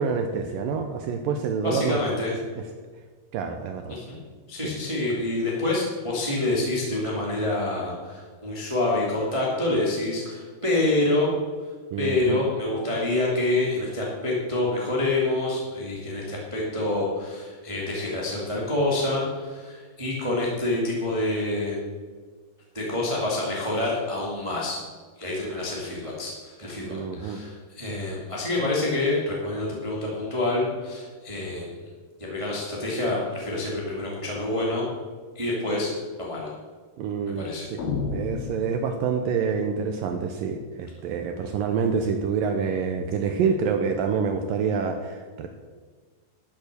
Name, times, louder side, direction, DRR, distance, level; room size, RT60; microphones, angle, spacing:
voice 1, 0.0-2.0 3.3-4.0 4.6-4.7 11.9-12.4 26.8-27.4 37.0-37.8 38.1-45.5, right 6 dB, 80° right, 6 dB, 2.1 m, -27 dB
voice 2, 1.6-2.3 3.9-4.2 4.5-11.3 12.0-21.8 22.7-24.8 25.2-31.7 32.2-34.9 35.3-35.9 36.2-36.5 37.4-37.7, left 2 dB, 10° right, -5 dB, 1.8 m, -27 dB
sound 1, 37.8-39.4, left 5 dB, 65° left, 3.7 m, -31 dB
12.5 x 8.5 x 6.9 m, 1.5 s
omnidirectional pair, 4.7 m